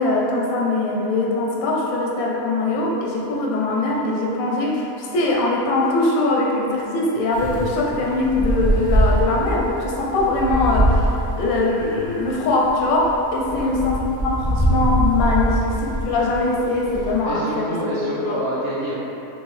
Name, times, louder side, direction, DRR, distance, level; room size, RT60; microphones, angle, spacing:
voice 1, 0.0-11.1 11.4-17.7 17.9-18.4, left 2 dB, 75° left, -3 dB, 1.0 m, -22 dB
Wind, 7.3-17.2, right 1 dB, 10° left, 0.4 m, -23 dB
voice 2, 17.2-19.0, right 1 dB, 60° right, -8 dB, 0.7 m, -28 dB
3.2 x 2.6 x 3.1 m, 3.0 s
omnidirectional pair, 1.5 m